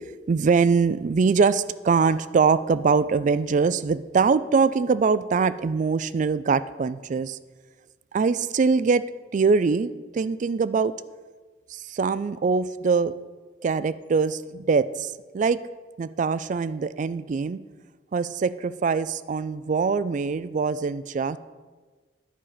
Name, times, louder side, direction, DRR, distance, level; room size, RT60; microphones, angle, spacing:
voice 1, 0.3-7.4 8.1-9.0 9.3-10.9 11.7-13.1 13.6-15.6 16.0-17.6 18.1-21.4, right 5 dB, 45° right, 16 dB, 0.3 m, -23 dB
10.0 x 5.5 x 6.6 m, 1.4 s
head